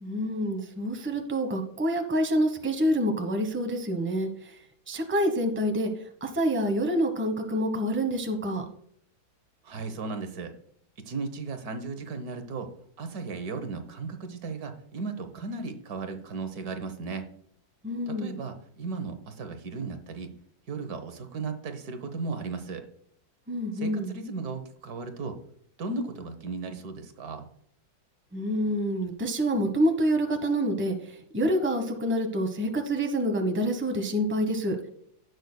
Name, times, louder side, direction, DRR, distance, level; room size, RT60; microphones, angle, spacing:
voice 1, 0.0-4.3 4.9-5.9 6.2-8.6 17.8-18.4 23.5-24.2 28.3-30.9 31.3-34.8, equal, 10° right, 5 dB, 1.0 m, -27 dB
voice 2, 9.6-10.5 11.1-12.7 13.0-17.2 18.1-20.3 20.7-22.9 23.7-25.4 25.8-27.5, right 4 dB, 70° right, 7 dB, 1.6 m, -35 dB
16.0 x 6.3 x 2.2 m, 0.66 s
omnidirectional pair, 1.7 m